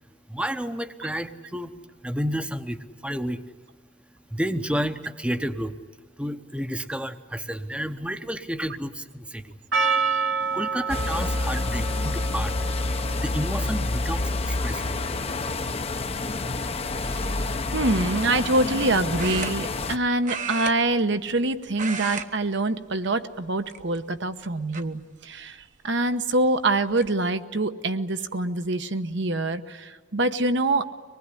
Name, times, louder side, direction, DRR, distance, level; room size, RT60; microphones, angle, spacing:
voice 1, 0.3-1.7 2.0-3.4 4.3-5.8 6.2-9.5 10.5-12.5 13.2-15.0, equal, 5° right, 9 dB, 0.8 m, -30 dB
Percussion, 9.7-14.7, right 5 dB, 85° right, 2.2 m, -29 dB
sound 1, 10.9-20.0, left 2 dB, 30° left, 0.8 m, -28 dB
voice 2, 17.0-17.4 17.7-30.9, right 2 dB, 65° right, 9 dB, 1.0 m, -25 dB
sound 2, 19.2-20.0 20.2-21.4 21.7-22.3 22.6-22.8 23.6-24.2 24.7-24.8 26.3-26.4 26.7-27.1, right 6 dB, 40° right, 1.0 m, -34 dB
24.5 x 19.5 x 9.9 m, 1.4 s
head